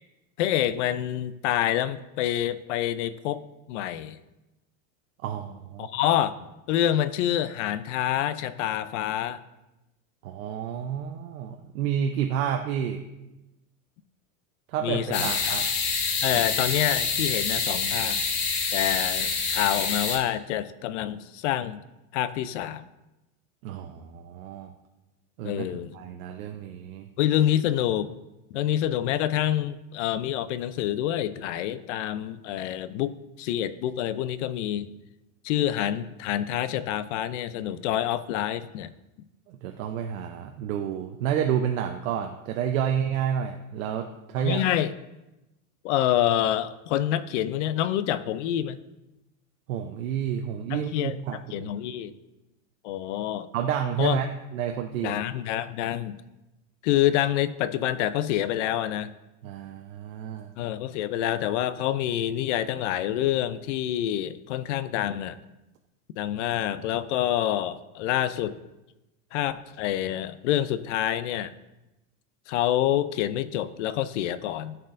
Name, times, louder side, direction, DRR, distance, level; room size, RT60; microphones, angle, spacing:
voice 1, 0.4-4.2 5.8-6.4 6.7-9.4 14.8-15.6 16.2-18.2 18.7-21.8 22.1-22.8 25.4-26.0 27.2-28.2 28.5-34.9 35.4-38.9 44.4-44.9 45.8-48.8 50.7-52.1 52.8-53.5 54.0-54.2 55.0-56.2 56.8-59.1 60.6-65.4 66.2-68.6 69.3-71.5 72.5-74.8, left 12 dB, 60° left, 14 dB, 0.5 m, -27 dB
voice 2, 5.2-5.9 10.2-13.0 14.7-15.6 23.6-24.7 25.4-25.7 25.9-27.1 39.5-44.6 49.7-51.7 53.5-54.3 54.5-55.2 59.4-60.5, right 9 dB, 70° right, 3 dB, 0.7 m, -30 dB
sound 1, 15.1-20.2, left 5 dB, 75° left, 1.6 m, -27 dB
13.5 x 4.5 x 2.5 m, 0.97 s
supercardioid pair, 160°, 42 cm